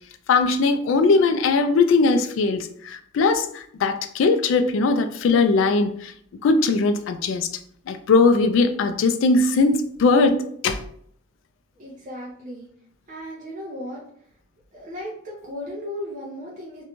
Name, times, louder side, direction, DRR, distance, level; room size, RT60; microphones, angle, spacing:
voice 1, 0.3-6.1 6.4-7.5 7.9-10.8, left 3 dB, 70° left, 0.3 m, -20 dB
voice 2, 11.8-12.7 13.1-14.0 14.7-16.8, left 1 dB, 40° right, 0.6 m, -35 dB
2.6 x 2.2 x 2.9 m
head